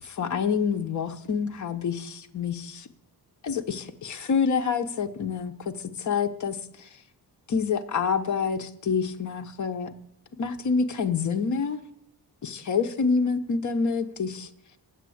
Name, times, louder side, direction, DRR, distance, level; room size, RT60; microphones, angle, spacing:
voice 1, 0.0-2.9 3.4-5.7 6.0-6.9 7.5-9.9 10.4-11.8 12.4-14.5, left 5 dB, 45° left, 6 dB, 0.7 m, -27 dB
8.2 x 8.2 x 7.7 m, 0.84 s
wide cardioid pair, 170°, 41 cm